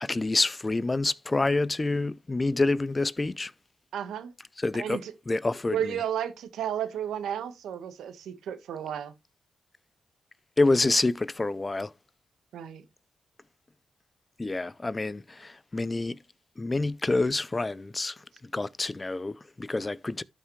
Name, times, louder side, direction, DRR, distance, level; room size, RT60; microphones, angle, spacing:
voice 1, 0.0-3.5 4.6-6.0 10.6-11.9 14.4-16.2 16.6-20.2, left 2 dB, 25° left, 0.5 m, -27 dB
voice 2, 3.9-4.3 4.7-5.1 5.7-9.1 12.5-12.8, right 9 dB, 90° right, 1.5 m, -33 dB
12.5 x 5.6 x 3.2 m
cardioid pair, 70°, 0 cm